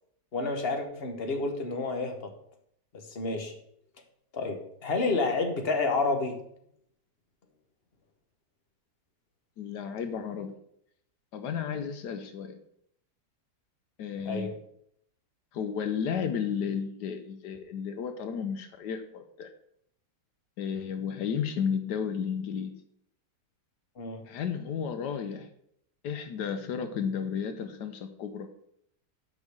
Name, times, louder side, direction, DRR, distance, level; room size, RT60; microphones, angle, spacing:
voice 1, 0.3-2.3 2.9-3.5 4.3-6.4 14.2-14.5 24.0-24.3, left 3 dB, 40° left, 5 dB, 1.2 m, -30 dB
voice 2, 9.6-10.6 11.3-12.6 14.0-14.5 15.5-19.5 20.6-22.7 24.3-25.5 26.0-28.5, left 7 dB, 80° left, 8 dB, 1.3 m, -33 dB
6.3 x 5.4 x 6.4 m, 0.71 s
omnidirectional pair, 1.8 m